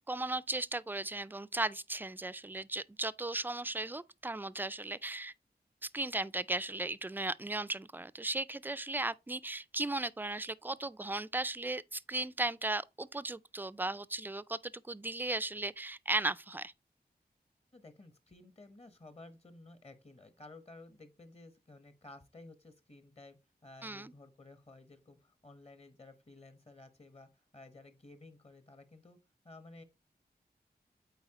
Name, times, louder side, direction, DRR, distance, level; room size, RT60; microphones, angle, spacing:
voice 1, 0.1-5.3 5.8-16.7 23.8-24.1, right 2 dB, 10° right, 0.3 m, -36 dB
voice 2, 17.7-23.4 23.6-29.2 29.4-29.8, left 2 dB, 40° left, 1.0 m, -54 dB
8.1 x 4.3 x 2.9 m
wide cardioid pair, 60°, 17 cm